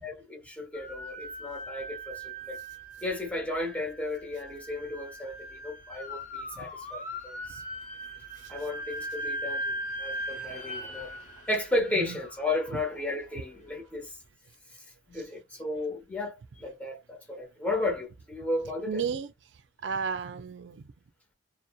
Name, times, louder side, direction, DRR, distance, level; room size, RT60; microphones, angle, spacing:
voice 1, 0.0-2.6 3.0-7.6 8.5-11.1 11.5-14.2 15.1-19.0, left 2 dB, 10° left, 0.9 m, -34 dB
sound 1, 0.7-13.8, equal, 45° left, 0.9 m, -40 dB
voice 2, 18.9-19.3 19.8-20.9, right 6 dB, 70° right, 0.4 m, -34 dB
2.7 x 2.0 x 2.2 m
head